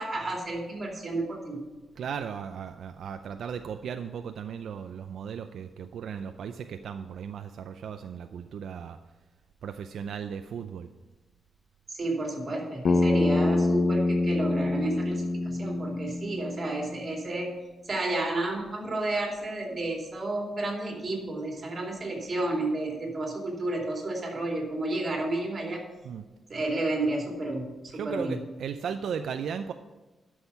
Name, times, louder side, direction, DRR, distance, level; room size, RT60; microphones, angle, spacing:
voice 1, 0.0-1.6 11.9-17.5 17.9-25.8 26.5-27.7 28.0-28.4, right 2 dB, 30° right, 0 dB, 2.7 m, -31 dB
voice 2, 2.0-9.0 9.6-10.9 26.0-26.2 27.9-29.7, right 7 dB, 75° right, 7 dB, 0.4 m, -36 dB
Bass guitar, 12.8-17.1, left 2 dB, 55° left, 0.6 m, -26 dB
11.5 x 6.3 x 5.5 m, 1.2 s
wide cardioid pair, 145°, 0 cm